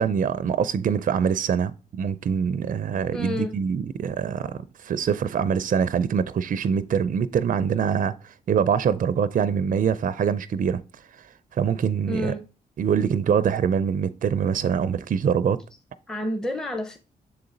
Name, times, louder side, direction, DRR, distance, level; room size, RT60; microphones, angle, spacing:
voice 1, 0.0-10.8 11.1-11.3 11.5-12.3 12.8-15.6, right 7 dB, 50° right, 0.4 m, -24 dB
voice 2, 3.1-3.5 12.1-12.4 16.1-17.0, equal, 5° left, 0.7 m, -29 dB
6.7 x 3.9 x 3.8 m
cardioid pair, 55°, 17 cm